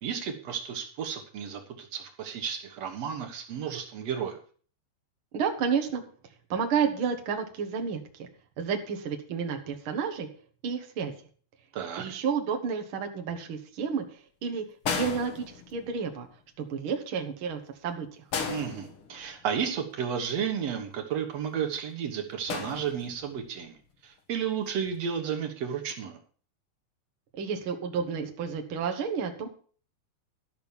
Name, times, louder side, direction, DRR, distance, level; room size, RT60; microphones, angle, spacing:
voice 1, 0.0-4.4 11.7-12.0 18.5-23.8 24.0-26.2, right 7 dB, 60° right, 5 dB, 1.8 m, -33 dB
voice 2, 5.3-6.0 6.5-8.3 8.6-10.3 10.6-11.1 12.0-16.3 16.6-18.1 27.4-29.5, right 6 dB, 80° right, 4 dB, 1.1 m, -31 dB
sound 1, 14.8-16.1 18.3-19.5 22.5-23.4 24.7-24.9, left 5 dB, 60° left, 1.4 m, -35 dB
12.5 x 6.2 x 7.1 m, 0.42 s
omnidirectional pair, 4.7 m